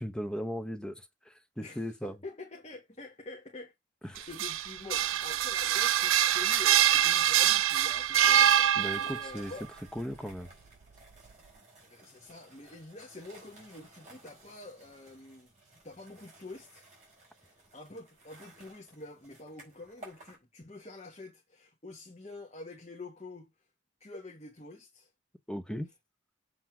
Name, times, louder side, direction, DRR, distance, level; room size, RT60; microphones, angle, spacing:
voice 1, 0.0-2.2 4.0-4.3 8.8-9.5 9.9-10.5 25.5-25.9, equal, 5° left, 0.8 m, -37 dB
voice 2, 1.6-3.7 4.0-9.6 11.8-15.5 15.8-16.9 17.4-23.5 24.0-25.1, left 2 dB, 30° left, 1.3 m, -47 dB
sound 1, 4.2-9.3, right 10 dB, 85° right, 0.4 m, -25 dB
sound 2, 8.8-20.4, right 2 dB, 35° right, 4.5 m, -56 dB
7.6 x 3.6 x 5.9 m
head